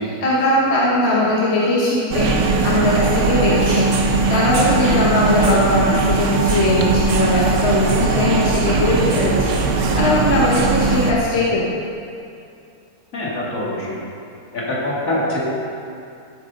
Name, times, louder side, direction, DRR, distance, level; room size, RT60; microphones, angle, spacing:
voice 1, 0.2-9.5 9.9-11.7, left 1 dB, 45° left, -5 dB, 1.5 m, -19 dB
sound 1, 2.1-11.1, right 3 dB, 60° right, 1.1 m, -19 dB
voice 2, 13.1-14.0 14.5-15.5, left 1 dB, 60° left, -5 dB, 2.5 m, -24 dB
14.0 x 8.2 x 4.0 m, 2.5 s
omnidirectional pair, 1.6 m